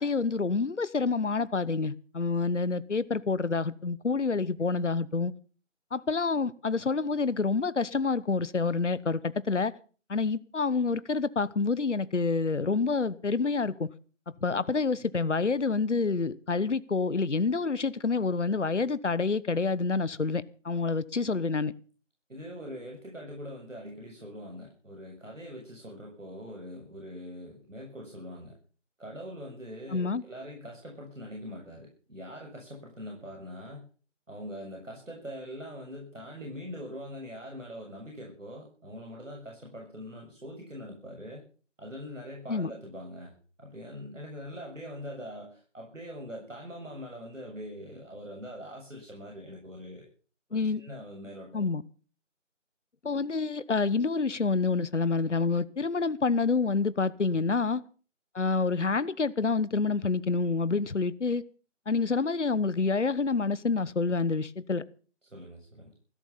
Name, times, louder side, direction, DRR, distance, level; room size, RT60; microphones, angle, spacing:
voice 1, 0.0-5.3 5.9-9.7 10.1-13.9 14.4-21.7 29.9-30.2 42.5-42.7 50.5-50.8 51.5-51.8 53.0-57.8 58.3-61.4 61.9-64.8, left 4 dB, 70° left, 1.1 m, -28 dB
voice 2, 22.3-28.5 29.0-33.9 34.3-41.4 41.8-43.3 43.6-50.1 50.5-51.7 65.3-65.9, equal, 80° right, 7.0 m, -43 dB
16.0 x 13.5 x 5.7 m
figure-of-eight pair, 170°, 38 cm